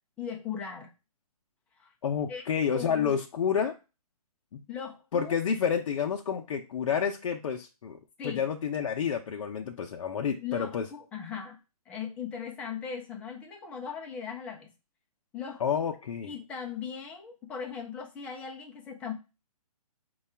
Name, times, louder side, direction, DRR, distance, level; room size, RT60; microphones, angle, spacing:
voice 1, 0.2-0.9 1.8-1.9 2.3-2.4 2.7-3.2 4.7-5.3 8.2-8.5 10.4-11.6 11.9-14.7 15.3-15.9 16.2-19.1, left 7 dB, 5° left, 1 dB, 0.3 m, -38 dB
voice 2, 2.0-3.7 4.5-4.6 5.1-10.8 15.6-16.3, left 7 dB, 60° left, 2 dB, 0.5 m, -29 dB
4.6 x 2.3 x 4.2 m, 0.28 s
hypercardioid pair, 150°, 20 cm